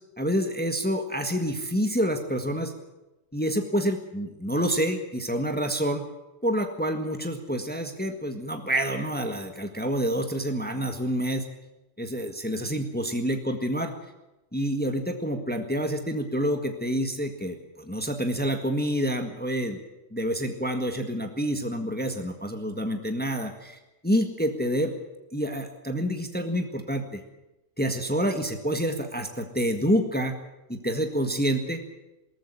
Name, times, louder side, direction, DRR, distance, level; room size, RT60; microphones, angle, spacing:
voice 1, 0.2-2.7 3.3-6.0 6.4-11.4 12.0-13.9 14.5-19.8 20.1-24.9 25.3-27.2 27.8-30.3 30.7-31.8, equal, 5° left, 5 dB, 1.7 m, -28 dB
19.0 x 14.0 x 10.0 m, 0.98 s
omnidirectional pair, 1.3 m